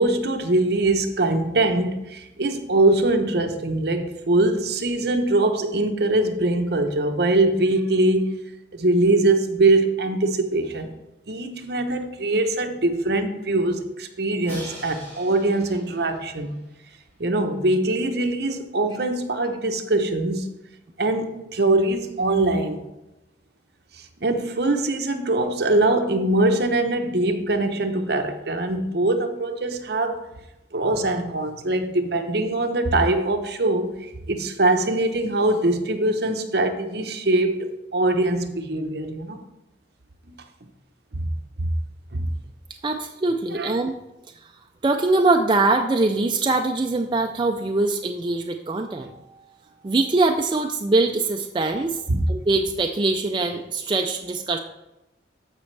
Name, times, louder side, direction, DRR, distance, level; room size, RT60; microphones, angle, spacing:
voice 1, 0.0-8.4 8.7-10.9 11.3-16.5 17.2-20.5 21.0-22.8 24.0-30.2 30.7-39.4 40.3-40.4 41.1-41.3 41.6-41.7 42.1-42.3 43.5-43.8 52.1-52.2, right 2 dB, 60° right, 0.9 m, -22 dB
Crash cymbal, 14.4-17.4, right 1 dB, 10° left, 3.3 m, -43 dB
voice 2, 42.8-43.9 44.4-44.5 44.8-49.4 49.8-52.0 52.3-54.6, right 3 dB, 25° right, 0.4 m, -22 dB
14.0 x 5.2 x 3.3 m
head